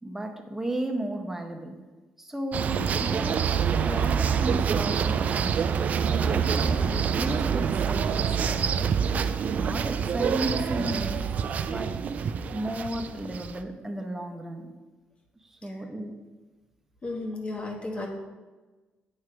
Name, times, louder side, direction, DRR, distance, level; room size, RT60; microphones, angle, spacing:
voice 1, 0.0-1.8 2.2-3.4 3.8-5.6 6.1-8.9 9.5-11.2 11.7-12.0 12.5-14.7 15.4-16.1, right 1 dB, 10° right, 4 dB, 0.7 m, -34 dB
sound 1, 2.5-13.6, right 7 dB, 50° right, 0.3 m, -26 dB
voice 2, 17.0-18.1, left 2 dB, 35° left, 1 dB, 1.2 m, -34 dB
9.0 x 3.2 x 4.8 m, 1.2 s
cardioid pair, 135°, 3 cm